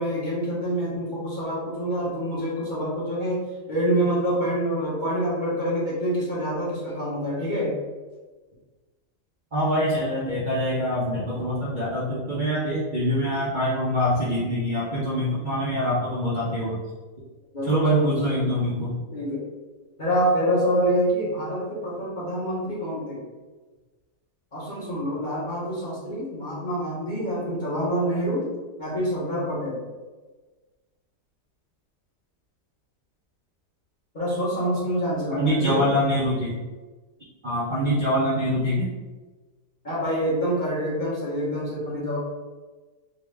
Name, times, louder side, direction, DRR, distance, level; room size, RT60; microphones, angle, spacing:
voice 1, 0.0-3.4 3.7-7.7 17.5-18.1 19.1-19.5 20.0-23.2 24.5-28.5 28.8-29.8 34.1-35.9 39.8-42.2, equal, 35° left, -8 dB, 0.9 m, -26 dB
voice 2, 9.5-16.8 17.6-19.0 35.3-36.6 37.4-38.9, equal, 45° right, -9 dB, 0.6 m, -24 dB
3.9 x 2.4 x 3.3 m, 1.3 s
omnidirectional pair, 1.7 m